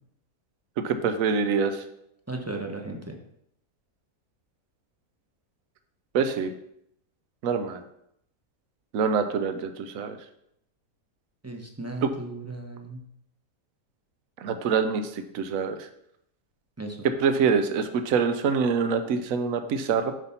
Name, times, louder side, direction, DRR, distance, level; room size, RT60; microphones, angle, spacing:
voice 1, 0.8-1.8 6.1-6.5 7.4-7.8 8.9-10.2 12.0-12.1 14.4-15.8 17.2-20.1, right 5 dB, 70° right, 8 dB, 1.1 m, -25 dB
voice 2, 2.3-3.2 11.4-13.0 16.8-17.0, right 2 dB, 15° right, 2 dB, 0.8 m, -36 dB
7.9 x 4.2 x 5.7 m, 0.75 s
omnidirectional pair, 1.5 m